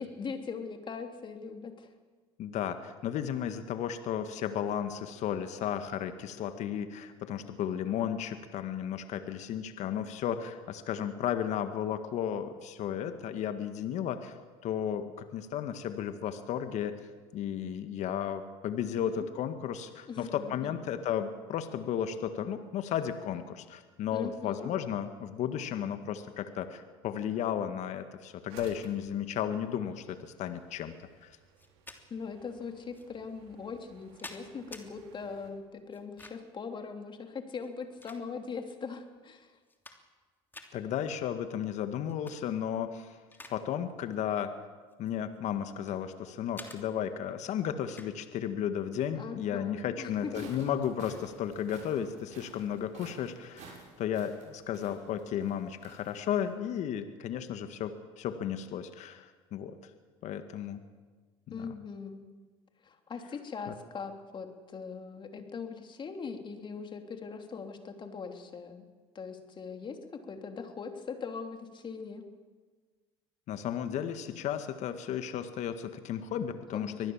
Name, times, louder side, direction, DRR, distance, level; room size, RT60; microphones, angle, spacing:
voice 1, 0.0-1.9 18.9-19.3 20.1-20.7 24.1-24.7 32.1-39.5 49.2-50.5 61.5-62.3 62.8-68.9 69.2-72.3 76.7-77.0, left 5 dB, 35° left, 5 dB, 3.3 m, -41 dB
voice 2, 2.4-14.4 14.6-17.0 17.3-30.9 31.2-31.4 40.7-43.2 43.5-44.5 45.0-59.8 60.2-60.8 61.5-61.7 63.7-63.8 73.5-77.1, left 9 dB, 55° left, 9 dB, 1.8 m, -34 dB
sound 1, 28.5-35.5, right 7 dB, 80° right, 3.7 m, -58 dB
sound 2, 31.6-32.0 32.9-33.1 33.8-34.9 35.9-36.6 37.5-38.6 39.2-39.3 39.6-40.2 40.5-40.7 42.1-42.4 42.8-43.6 43.9-44.1 44.9-46.0 46.6-46.8 47.9-48.1, left 2 dB, 15° left, 2.9 m, -49 dB
sound 3, 50.0-56.5, right 4 dB, 60° right, 6.7 m, -53 dB
24.5 x 19.0 x 7.4 m, 1.4 s
hypercardioid pair, 80°, 14 cm